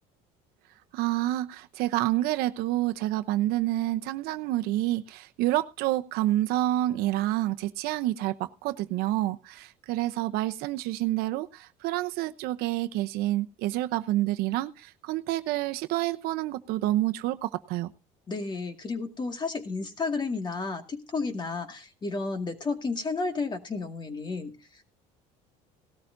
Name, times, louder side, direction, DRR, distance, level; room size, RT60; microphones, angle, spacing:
voice 1, 0.9-17.9, right 15 dB, 70° right, 10 dB, 0.9 m, -28 dB
voice 2, 18.3-24.6, left 4 dB, 25° left, 6 dB, 2.1 m, -32 dB
18.0 x 13.5 x 2.7 m, 0.29 s
cardioid pair, 115°, 16 cm